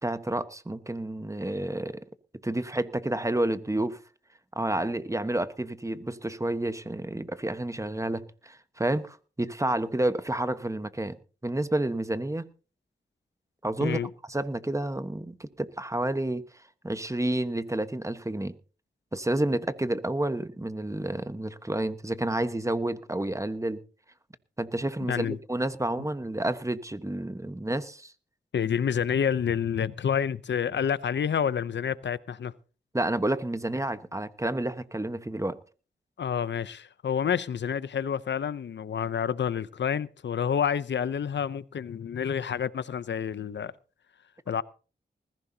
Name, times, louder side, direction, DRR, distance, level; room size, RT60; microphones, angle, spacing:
voice 1, 0.0-2.0 2.4-4.0 4.5-11.2 11.4-12.4 13.6-14.0 14.3-16.4 16.8-18.5 19.1-23.8 24.6-28.1 32.9-35.6, right 1 dB, 15° right, 1.2 m, -30 dB
voice 2, 25.1-25.4 28.5-32.5 36.2-43.7 44.5-44.6, left 8 dB, 85° left, 0.7 m, -28 dB
20.5 x 15.0 x 2.8 m
cardioid pair, 60°, 18 cm